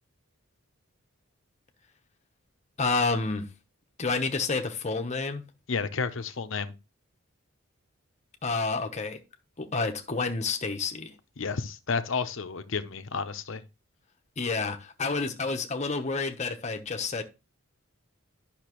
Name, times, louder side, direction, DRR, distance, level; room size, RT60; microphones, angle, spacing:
voice 1, 2.8-3.5 4.0-5.4 8.4-9.2 9.6-11.1 14.4-17.2, left 4 dB, 35° left, 0.9 m, -29 dB
voice 2, 5.7-6.7 11.4-13.6, left 5 dB, 60° left, 0.7 m, -31 dB
10.0 x 5.8 x 3.0 m
head